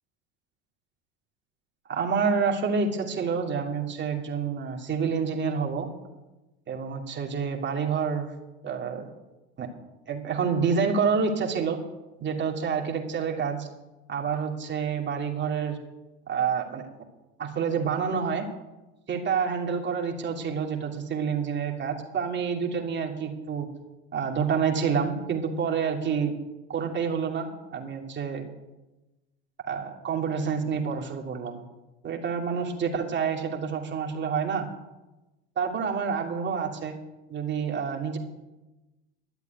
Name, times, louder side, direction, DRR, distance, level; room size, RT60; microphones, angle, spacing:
voice 1, 1.9-5.9 6.7-8.3 8.6-9.1 9.6-9.7 10.1-11.8 12.2-13.7 14.1-15.8 16.3-16.8 17.4-18.5 19.1-23.7 24.1-26.3 26.7-28.5 29.7-31.6 32.0-34.7 35.6-37.0 37.3-38.2, right 6 dB, 35° right, 1 dB, 2.8 m, -28 dB
12.0 x 8.1 x 9.3 m, 1.1 s
hypercardioid pair, 85°, 30 cm